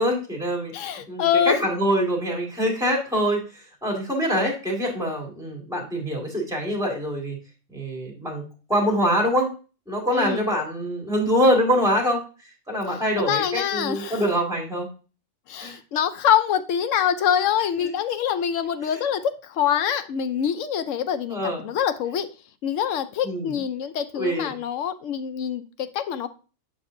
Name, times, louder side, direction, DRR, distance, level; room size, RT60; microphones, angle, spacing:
voice 1, 0.0-3.4 3.8-7.4 7.7-9.5 9.9-12.2 12.7-14.9 15.6-15.8 17.8-17.9 21.3-21.6 23.2-23.5 24.1-24.5, equal, 5° right, -2 dB, 1.8 m, -24 dB
voice 2, 0.7-1.6 10.1-10.5 13.2-14.2 15.5-22.3 22.6-26.3, left 9 dB, 75° left, 11 dB, 1.0 m, -25 dB
7.1 x 5.3 x 2.6 m, 0.34 s
omnidirectional pair, 1.3 m